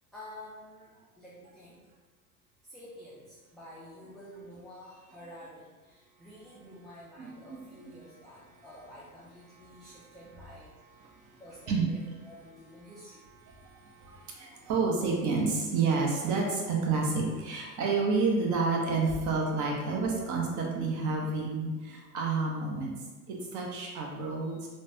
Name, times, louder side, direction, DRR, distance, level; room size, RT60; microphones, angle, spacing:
voice 1, 0.1-1.8 2.7-10.7 11.4-12.0 12.2-13.3 24.4-24.6, left 1 dB, ahead, -9 dB, 0.4 m, -50 dB
voice 2, 7.2-7.9 9.7-9.9 11.0-11.4 11.7-11.9 13.4-22.9 23.3-24.7, right 4 dB, 45° right, -1 dB, 0.8 m, -30 dB
3.2 x 2.2 x 2.7 m, 1.3 s
hypercardioid pair, 80°, 44 cm